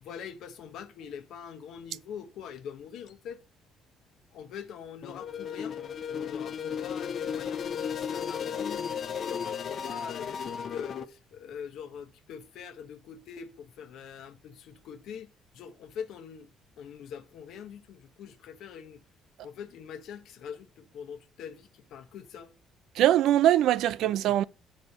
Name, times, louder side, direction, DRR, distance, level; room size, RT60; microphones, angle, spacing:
voice 1, 0.0-3.4 4.3-5.8 6.0-8.9 9.2-16.5 16.8-19.0 19.4-22.5, left 7 dB, 75° left, 1.0 m, -43 dB
sound 1, 5.0-11.0, left 7 dB, 50° left, 0.9 m, -34 dB
voice 2, 23.0-24.4, right 12 dB, 75° right, 0.4 m, -22 dB
6.7 x 4.2 x 6.6 m
cardioid pair, 85°, 0 cm